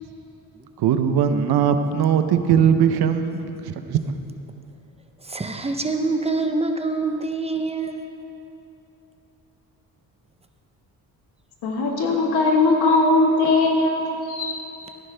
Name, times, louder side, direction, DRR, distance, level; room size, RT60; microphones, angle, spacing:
voice 1, 0.8-4.0, right 8 dB, 75° right, 9 dB, 0.7 m, -20 dB
voice 2, 5.2-8.0, right 3 dB, 15° right, 5 dB, 0.6 m, -25 dB
voice 3, 11.6-14.7, left 2 dB, 80° left, 0 dB, 1.7 m, -20 dB
15.5 x 9.8 x 3.4 m, 2.9 s
cardioid pair, 125°, 39 cm